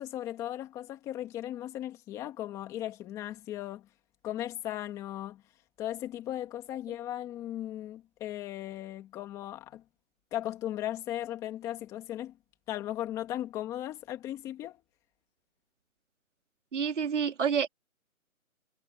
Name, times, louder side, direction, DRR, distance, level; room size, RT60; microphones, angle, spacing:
voice 1, 0.0-3.9 4.2-5.4 5.8-9.8 10.3-12.4 12.7-14.8, left 13 dB, 5° left, 2.1 m, -37 dB
voice 2, 16.7-17.7, right 7 dB, 55° right, 3.0 m, -28 dB
hypercardioid pair, 170°, 43 cm